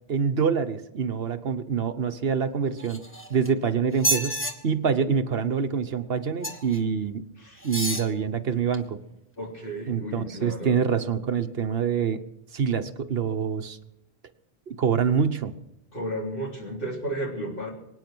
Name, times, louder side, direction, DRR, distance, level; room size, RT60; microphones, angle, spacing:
voice 1, 0.1-3.0 3.3-4.4 4.6-7.2 7.6-9.0 9.9-12.2 12.5-13.8 14.7-15.5, right 6 dB, 65° right, 9 dB, 1.3 m, -26 dB
sound 1, 2.8-3.5 3.9-4.5 6.4-6.8 7.6-8.1 8.7-8.8, right 1 dB, 10° left, 1.6 m, -29 dB
voice 2, 9.4-10.8 15.9-17.7, right 1 dB, 55° left, -1 dB, 3.8 m, -33 dB
24.0 x 9.6 x 6.2 m, 0.88 s
omnidirectional pair, 1.1 m